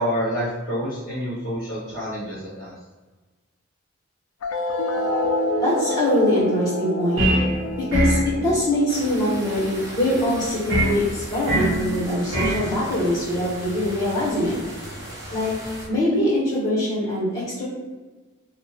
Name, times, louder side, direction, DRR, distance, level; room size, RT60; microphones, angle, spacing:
voice 1, 0.0-2.7, equal, 35° left, -11 dB, 0.7 m, -27 dB
sound 1, 4.4-11.4, left 2 dB, 80° left, 0.3 m, -29 dB
voice 2, 5.6-7.3 7.8-14.5 15.3-15.5 15.9-17.6, left 1 dB, 15° left, -9 dB, 1.1 m, -23 dB
sound 2, 7.2-7.5 7.9-8.3 10.7-11.0 11.5-11.8 12.3-12.6, right 1 dB, 70° right, 0.9 m, -21 dB
sound 3, 8.9-15.9, right 1 dB, 15° right, 0.5 m, -37 dB
2.5 x 2.2 x 2.8 m, 1.2 s
head